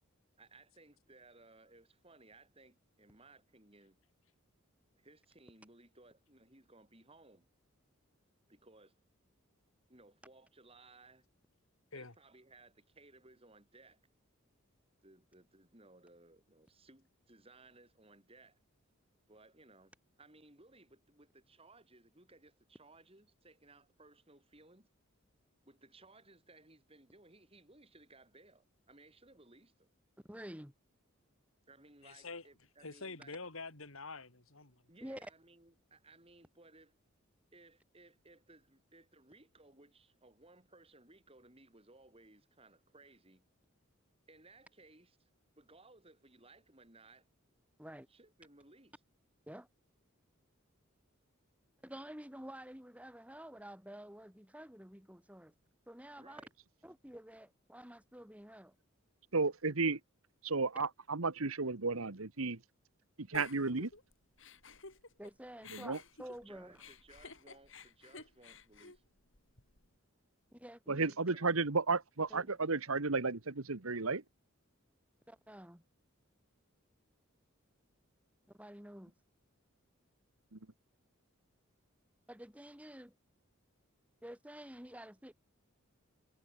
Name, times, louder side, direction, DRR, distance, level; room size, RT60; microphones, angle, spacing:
voice 1, 0.4-4.0 4.9-7.5 8.5-8.9 9.9-11.3 11.9-14.0 15.0-18.6 19.3-24.9 25.7-29.9 31.7-33.4 34.9-36.9 37.5-43.4 44.3-45.3 45.6-47.3 48.1-49.0 56.2-56.5 66.5-69.0 70.9-71.5, right 2 dB, 25° right, 5.6 m, -61 dB
voice 2, 30.3-30.7 35.0-35.3 47.8-48.1 49.5-49.7 51.8-55.5 55.9-56.4 56.8-58.7 65.2-66.8 70.5-71.1 72.3-72.5 75.3-75.8 78.5-79.1 82.3-83.1 84.2-85.3, equal, 5° right, 4.6 m, -50 dB
voice 3, 32.0-32.5 32.8-34.8, left 3 dB, 75° left, 3.4 m, -46 dB
voice 4, 59.3-60.0 60.4-62.6 63.2-63.9 65.7-66.0 70.9-74.2 80.5-80.6, right 4 dB, 80° right, 1.4 m, -33 dB
Giggle, 63.3-65.3 65.6-69.9, left 4 dB, 60° left, 7.1 m, -53 dB
head